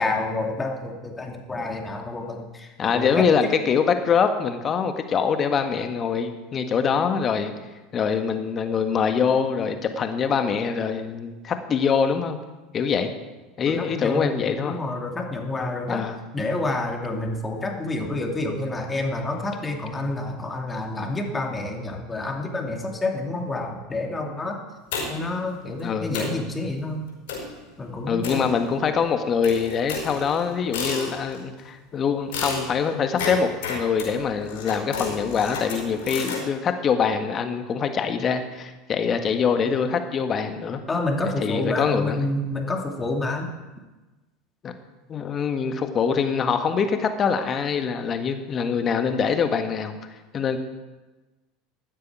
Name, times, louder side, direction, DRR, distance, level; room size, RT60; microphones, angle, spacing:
voice 1, 0.0-3.5 13.7-14.3 14.6-16.0 16.3-24.6 25.1-27.0 27.8-28.4 40.9-43.5, left 2 dB, 15° left, 2 dB, 2.6 m, -28 dB
voice 2, 2.8-7.5 7.9-12.4 12.7-13.1 13.6-14.8 15.9-16.2 25.8-26.1 28.1-40.8 41.4-42.2 44.6-44.7 45.1-50.0 50.3-50.6, left 6 dB, 30° left, 7 dB, 1.6 m, -24 dB
sound 1, 24.9-25.4 25.8-25.9 26.1-26.4 27.3-27.6 28.2-29.0 29.4-31.4 32.3-36.4, left 4 dB, 60° left, 5.0 m, -32 dB
15.5 x 12.5 x 4.8 m, 1.2 s
figure-of-eight pair, 75°, 0 cm